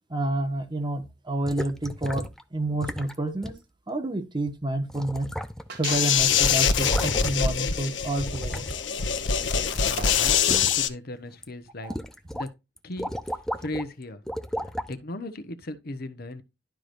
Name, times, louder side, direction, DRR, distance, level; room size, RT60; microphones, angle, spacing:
voice 1, 0.1-2.2 2.5-3.5 3.9-5.3 5.8-8.7 11.8-12.0, right 1 dB, 25° right, 1.4 m, -29 dB
sound 1, 1.5-2.4 2.8-3.2 3.4-3.6 4.5-4.6 4.9-5.8 6.1-7.6 8.2-9.7 10.0-10.8 11.3-11.4 11.9-12.5 12.8-13.9 14.3-14.9 15.6-15.7, equal, 5° left, 0.6 m, -34 dB
sound 2, 5.7-6.3 6.8-10.4, right 4 dB, 60° right, 1.7 m, -41 dB
sound 3, 5.8-10.9, left 7 dB, 90° left, 0.9 m, -24 dB
voice 2, 9.8-11.9 12.3-12.5 12.8-13.1 13.6-14.2 14.6-16.4, left 2 dB, 55° left, 1.0 m, -36 dB
12.0 x 4.8 x 2.6 m
head